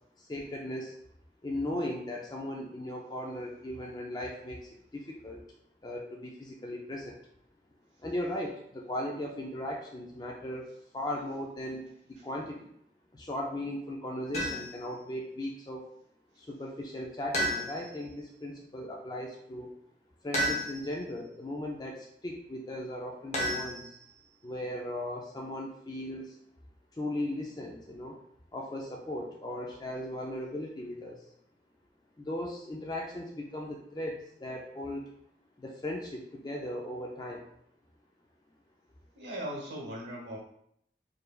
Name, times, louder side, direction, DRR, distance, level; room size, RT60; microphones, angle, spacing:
voice 1, 0.2-0.9 1.4-5.4 5.8-7.2 8.0-10.7 10.9-11.9 12.2-12.7 13.1-15.8 16.4-19.7 20.2-24.0 24.4-26.4 26.9-28.2 28.5-31.2 32.2-35.0 35.6-37.4, left 1 dB, 20° left, -1 dB, 0.4 m, -37 dB
sound 1, 14.3-14.9 17.3-18.1 20.3-21.0 23.3-24.2, equal, 40° left, 0.9 m, -32 dB
voice 2, 39.1-40.4, right 1 dB, 85° right, -1 dB, 1.0 m, -38 dB
4.5 x 3.2 x 2.3 m, 0.71 s
head